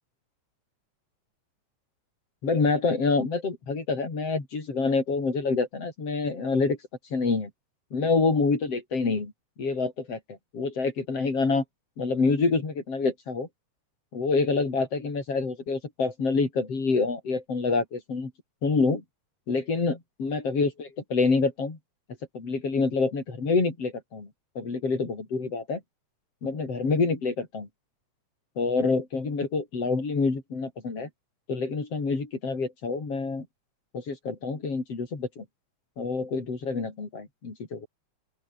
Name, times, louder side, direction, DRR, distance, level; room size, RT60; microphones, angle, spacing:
voice 1, 2.4-6.8 7.1-7.5 7.9-9.3 9.6-11.6 12.0-13.5 14.1-18.3 18.6-19.0 19.5-21.8 22.3-24.3 24.6-25.8 26.4-27.7 28.6-31.1 31.5-33.5 33.9-35.5 36.0-37.9, left 4 dB, 55° left, 5.7 m, -27 dB
open air
omnidirectional pair, 3.3 m